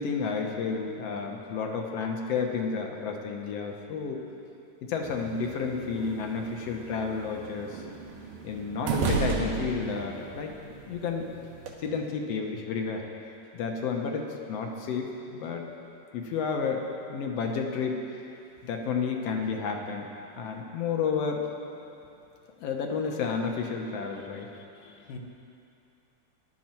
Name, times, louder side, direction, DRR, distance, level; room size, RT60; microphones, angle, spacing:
voice 1, 0.0-4.2 4.9-7.8 8.4-10.5 10.9-11.3 11.8-13.0 13.5-15.6 16.1-18.2 18.6-20.1 20.4-21.5 22.6-24.5, left 5 dB, 65° left, 2 dB, 1.8 m, -31 dB
sound 1, 5.0-11.7, right 4 dB, 85° right, 2.9 m, -35 dB
voice 2, 24.3-25.2, left 4 dB, 80° left, 3 dB, 2.7 m, -47 dB
18.5 x 11.5 x 4.5 m, 2.7 s
omnidirectional pair, 3.8 m